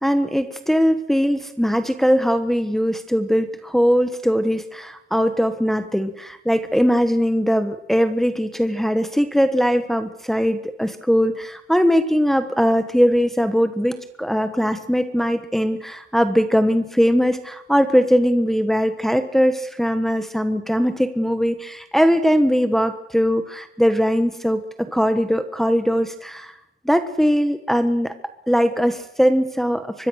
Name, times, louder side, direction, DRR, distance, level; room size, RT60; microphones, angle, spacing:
voice 1, 0.0-26.5 26.8-28.1 28.5-30.1, equal, ahead, 8 dB, 1.4 m, -20 dB
24.5 x 22.5 x 6.5 m, 0.82 s
wide cardioid pair, 155°, 20 cm